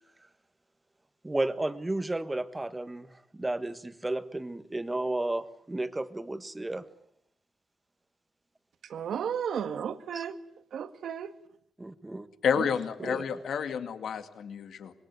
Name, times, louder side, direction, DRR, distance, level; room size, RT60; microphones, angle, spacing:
voice 1, 1.2-6.8 10.1-10.2 11.8-12.3 13.0-13.2, right 2 dB, 15° right, 11 dB, 1.5 m, -33 dB
voice 2, 8.9-10.4 10.7-11.4 12.6-12.7, right 8 dB, 75° right, 10 dB, 1.8 m, -33 dB
voice 3, 12.4-14.9, left 7 dB, 70° left, 9 dB, 2.2 m, -30 dB
25.5 x 22.0 x 9.3 m, 0.70 s
wide cardioid pair, 140°, 0 cm